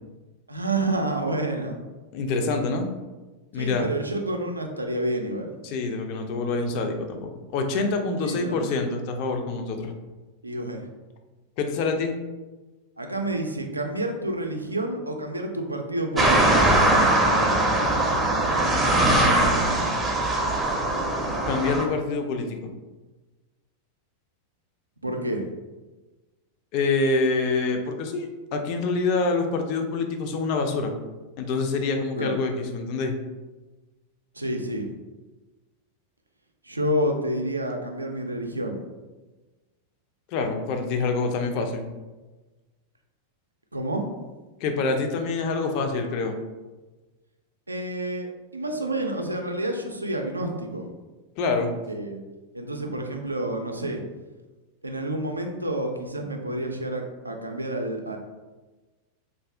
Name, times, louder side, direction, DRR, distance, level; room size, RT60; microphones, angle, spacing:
voice 1, 0.5-1.8 3.5-5.5 8.2-8.7 10.4-10.9 13.0-16.8 25.0-25.4 32.2-32.4 34.3-34.9 36.6-38.8 43.7-44.1 47.7-48.3 48.5-50.9 51.9-52.2 52.5-54.0 54.8-58.2, right 1 dB, 80° right, 3 dB, 0.4 m, -29 dB
voice 2, 2.1-2.9 3.5-3.9 5.6-9.9 11.6-12.2 18.7-19.9 21.5-22.7 26.7-30.9 31.4-33.1 40.3-41.9 44.6-46.4 51.4-51.7, left 3 dB, 45° left, 5 dB, 0.4 m, -26 dB
sound 1, 16.2-21.8, right 1 dB, 10° right, 0.5 m, -21 dB
2.5 x 2.3 x 3.3 m, 1.2 s
figure-of-eight pair, 90°, 0 cm